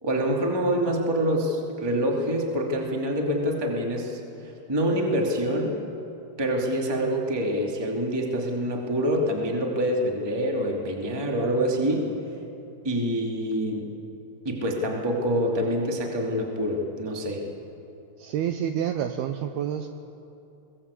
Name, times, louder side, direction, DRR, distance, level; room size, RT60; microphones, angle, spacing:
voice 1, 0.0-5.8 6.4-12.1 12.8-13.9 14.4-17.4, equal, 10° right, 0 dB, 1.2 m, -26 dB
voice 2, 18.2-19.9, right 9 dB, 90° right, 7 dB, 2.2 m, -28 dB
21.5 x 19.0 x 8.4 m, 2.8 s
omnidirectional pair, 5.3 m